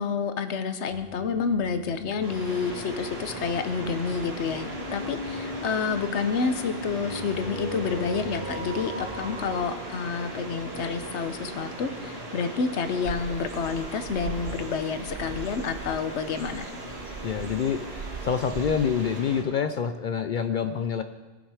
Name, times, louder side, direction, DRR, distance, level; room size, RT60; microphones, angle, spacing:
voice 1, 0.0-16.7, left 5 dB, 80° left, 9 dB, 1.1 m, -29 dB
sound 1, 0.9-9.7, left 1 dB, 40° left, 2.4 m, -40 dB
sound 2, 2.2-19.4, right 1 dB, 60° right, 2.1 m, -38 dB
sound 3, 13.1-19.2, right 6 dB, 45° right, 0.4 m, -41 dB
voice 2, 17.2-21.0, left 7 dB, 60° left, 9 dB, 0.5 m, -27 dB
18.0 x 6.3 x 4.8 m, 1.3 s
omnidirectional pair, 1.2 m